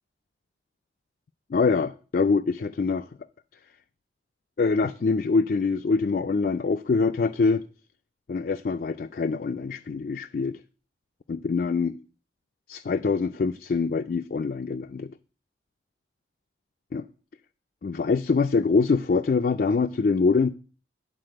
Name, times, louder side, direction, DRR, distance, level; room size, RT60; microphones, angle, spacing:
voice 1, 1.5-3.1 4.6-7.6 8.3-10.6 11.3-12.0 12.7-15.1 16.9-17.0 17.8-20.5, left 4 dB, 50° left, 0.4 m, -24 dB
11.0 x 4.2 x 7.6 m
head